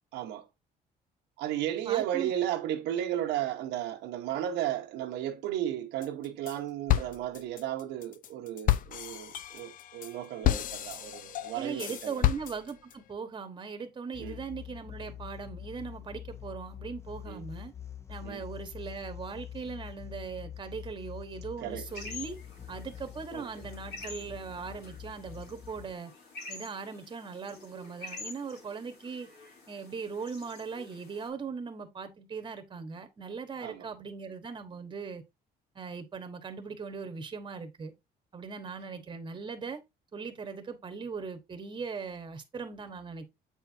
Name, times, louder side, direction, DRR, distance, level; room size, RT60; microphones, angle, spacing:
voice 1, 0.1-0.5 1.4-12.2 14.2-14.4 17.3-17.4 18.2-18.4 21.6-21.9 23.3-23.5 33.6-33.9, right 11 dB, 90° right, 1.0 m, -34 dB
voice 2, 1.9-2.3 11.5-17.7 18.1-22.4 22.7-26.1 26.5-29.3 29.7-35.2 35.7-37.9 38.3-39.8 40.1-43.2, right 5 dB, 30° right, 1.1 m, -39 dB
sound 1, 6.0-6.6 6.9-12.9, left 13 dB, 55° left, 0.5 m, -31 dB
sound 2, 14.1-25.9, left 10 dB, 15° left, 0.7 m, -45 dB
sound 3, 21.9-31.3, left 3 dB, 75° left, 3.0 m, -47 dB
7.9 x 4.5 x 2.6 m
cardioid pair, 110°, 17 cm